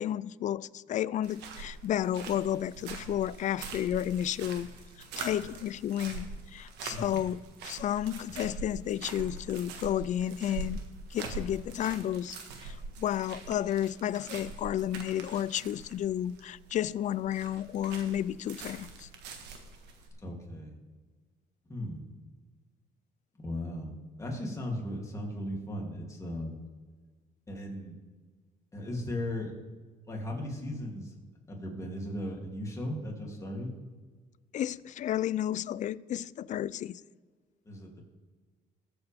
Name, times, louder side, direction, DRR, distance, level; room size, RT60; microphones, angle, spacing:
voice 1, 0.0-4.7 5.2-10.8 11.1-19.1 34.5-37.0, left 11 dB, 45° left, 0.4 m, -32 dB
sound 1, 1.2-20.1, right 4 dB, 85° right, 1.6 m, -43 dB
voice 2, 6.9-7.2 20.2-20.7 21.7-22.0 23.3-23.9 24.2-26.6 27.5-28.0 28.7-29.5 30.1-31.2 31.5-33.7 37.6-38.0, left 1 dB, 20° left, 3.0 m, -37 dB
20.0 x 8.1 x 3.6 m
cardioid pair, 110°, 17 cm